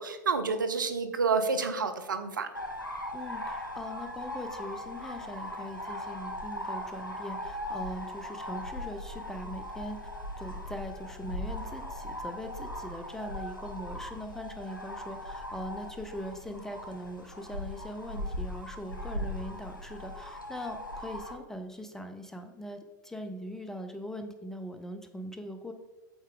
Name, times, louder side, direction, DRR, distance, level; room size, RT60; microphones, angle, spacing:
voice 1, 0.0-2.5, right 4 dB, 75° right, 8 dB, 0.6 m, -29 dB
sound 1, 2.5-21.3, left 1 dB, 85° left, 1.1 m, -39 dB
voice 2, 3.1-10.0 10.4-25.7, equal, 5° left, 7 dB, 0.6 m, -41 dB
7.9 x 4.3 x 3.8 m, 1.1 s
figure-of-eight pair, 90°, 11 cm